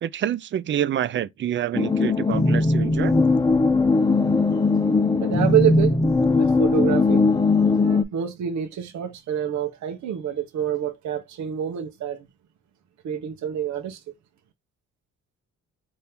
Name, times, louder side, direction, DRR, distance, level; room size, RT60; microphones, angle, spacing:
voice 1, 0.0-3.1, right 11 dB, 40° right, 0.4 m, -27 dB
sound 1, 1.7-8.0, left 3 dB, 15° left, 0.6 m, -19 dB
voice 2, 5.2-6.0 6.3-7.2 7.8-12.3 13.0-14.0, right 10 dB, 65° right, 0.8 m, -27 dB
4.2 x 2.7 x 3.4 m
cardioid pair, 90°, 30 cm